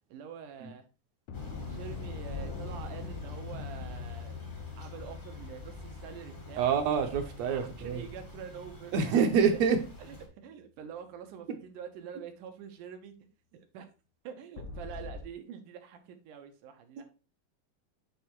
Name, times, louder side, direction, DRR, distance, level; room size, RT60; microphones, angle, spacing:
voice 1, 0.1-0.9 1.7-4.4 4.8-6.8 7.4-8.9 9.3-9.6 10.0-10.2 10.4-13.1 13.5-13.9 14.2-17.1, right 8 dB, 85° right, 6 dB, 2.6 m, -46 dB
sound 1, 1.3-9.6 14.6-15.2, left 7 dB, 75° left, 2.3 m, -44 dB
Thunder / Rain, 1.3-10.3, left 1 dB, 30° left, 0.9 m, -45 dB
voice 2, 6.6-8.1 8.9-9.8, right 6 dB, 70° right, 7 dB, 1.8 m, -26 dB
8.3 x 3.6 x 4.4 m, 0.32 s
omnidirectional pair, 3.6 m